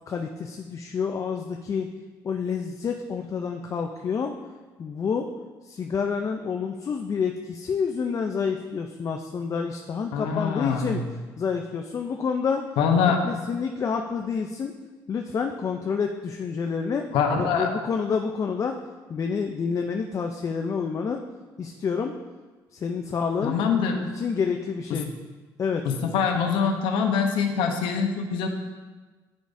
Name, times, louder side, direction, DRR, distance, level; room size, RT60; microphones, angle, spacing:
voice 1, 0.1-1.9 2.2-4.3 4.8-5.3 5.6-11.0 11.4-12.6 13.1-14.7 15.1-17.1 17.4-18.7 19.1-21.2 21.6-22.1 22.7-23.6 24.0-25.1 25.6-25.8, left 6 dB, 40° left, 3 dB, 0.5 m, -28 dB
voice 2, 10.1-11.0 12.8-13.2 17.1-17.7 23.4-24.0 24.9-25.0 25.8-28.5, left 6 dB, 85° left, 4 dB, 0.8 m, -24 dB
10.0 x 4.9 x 2.6 m, 1.3 s
cardioid pair, 105°, 8 cm